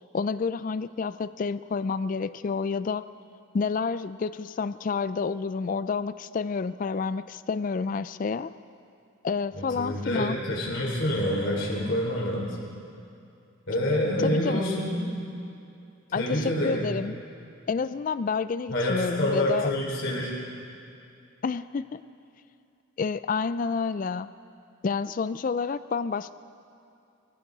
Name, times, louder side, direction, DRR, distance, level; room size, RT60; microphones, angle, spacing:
voice 1, 0.1-3.0 3.5-8.5 9.2-10.4 14.2-14.7 16.1-17.2 17.7-19.7 21.4-22.0 23.0-24.3 24.8-26.3, left 5 dB, 40° left, 14 dB, 0.3 m, -29 dB
voice 2, 9.7-12.6 13.7-15.0 16.2-16.8 18.7-20.3, left 1 dB, 60° left, -4 dB, 3.6 m, -27 dB
24.0 x 14.5 x 3.9 m, 2.6 s
head